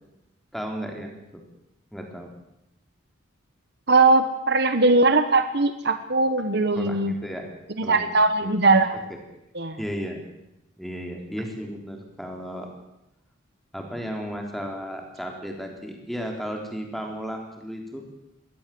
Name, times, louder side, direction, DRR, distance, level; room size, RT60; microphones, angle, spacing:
voice 1, 0.5-1.4 1.9-2.3 6.8-7.5 7.8-8.2 8.4-8.9 9.8-10.2 10.8-12.7 13.7-18.1, equal, ahead, 2 dB, 3.7 m, -34 dB
voice 2, 3.9-7.1 7.8-9.0 9.5-9.8, right 3 dB, 55° right, 10 dB, 1.3 m, -20 dB
22.5 x 17.5 x 7.7 m, 0.88 s
head